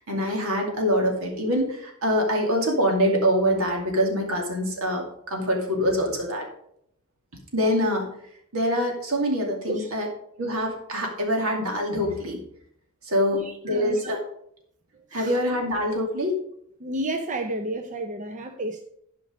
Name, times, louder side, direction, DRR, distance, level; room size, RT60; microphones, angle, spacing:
voice 1, 0.0-6.5 7.5-8.1 8.5-10.1 10.4-12.4 13.1-14.2 15.1-16.4, equal, 75° right, 1 dB, 2.5 m, -24 dB
voice 2, 13.3-14.1 15.1-15.4 16.8-18.8, right 1 dB, 35° right, 5 dB, 0.7 m, -31 dB
12.0 x 5.2 x 5.0 m, 0.71 s
head